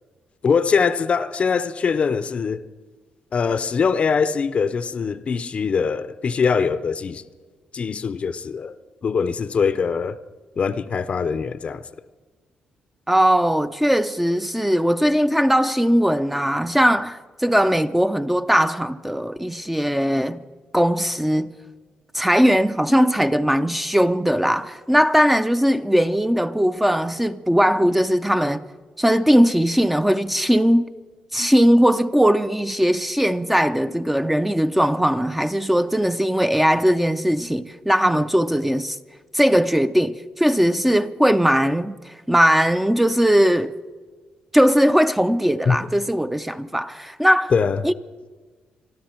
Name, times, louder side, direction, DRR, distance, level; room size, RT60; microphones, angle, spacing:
voice 1, 0.4-2.7 3.3-7.2 7.7-8.7 9.0-10.2 10.6-11.8 45.7-45.8 47.5-47.8, left 5 dB, 45° left, 0.5 m, -22 dB
voice 2, 13.1-20.4 20.7-21.5 22.1-28.6 29.0-30.8 31.3-39.0 39.3-43.7 44.5-47.5 47.8-47.9, equal, 5° right, 0.4 m, -19 dB
24.5 x 12.5 x 4.4 m
cardioid pair, 100°, 3 cm